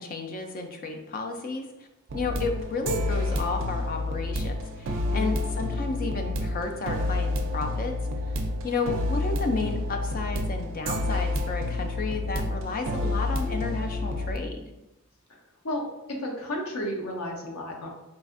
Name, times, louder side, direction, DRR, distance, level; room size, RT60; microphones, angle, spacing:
voice 1, 0.0-1.6 2.1-8.0 8.6-14.6, left 3 dB, 40° left, 4 dB, 0.4 m, -32 dB
sound 1, 2.1-14.4, left 2 dB, 60° right, 0.4 m, -29 dB
voice 2, 16.2-17.9, left 1 dB, 80° left, 0 dB, 0.7 m, -32 dB
4.0 x 2.5 x 2.4 m, 0.94 s
head